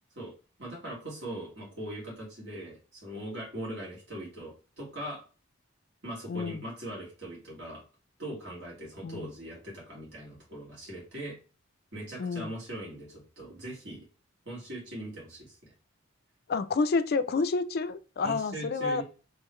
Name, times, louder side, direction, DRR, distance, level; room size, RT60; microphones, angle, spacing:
voice 1, 0.6-5.2 6.0-7.8 8.2-11.4 11.9-14.0 14.5-15.7 18.2-19.0, right 1 dB, 60° right, 2.0 m, -40 dB
voice 2, 6.3-6.6 9.0-9.3 12.2-12.5 16.5-19.0, left 4 dB, 50° left, 0.4 m, -29 dB
3.7 x 3.1 x 3.1 m
head